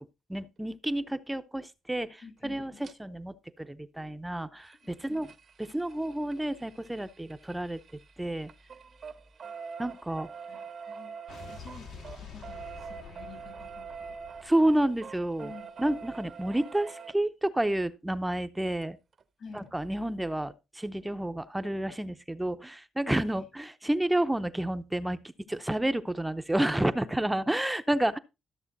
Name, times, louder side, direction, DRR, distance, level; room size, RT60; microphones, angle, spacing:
voice 1, 0.3-5.3 5.6-7.8 8.2-8.5 9.8-10.3 14.4-15.5 15.8-19.0 19.5-25.2 25.5-28.2, right 1 dB, 10° right, 0.7 m, -30 dB
voice 2, 2.2-2.8 4.8-5.2 10.4-14.5 15.4-15.7 19.4-19.7 23.3-23.5, left 5 dB, 60° left, 3.2 m, -50 dB
sound 1, 2.8-2.9 4.6-8.1 8.4-17.1 18.8-18.9 19.2-19.3 19.6-19.7, right 6 dB, 50° right, 0.9 m, -44 dB
Explosion, 11.3-15.6, left 5 dB, 85° left, 3.6 m, -48 dB
13.5 x 6.9 x 4.0 m
cardioid pair, 90°, 0 cm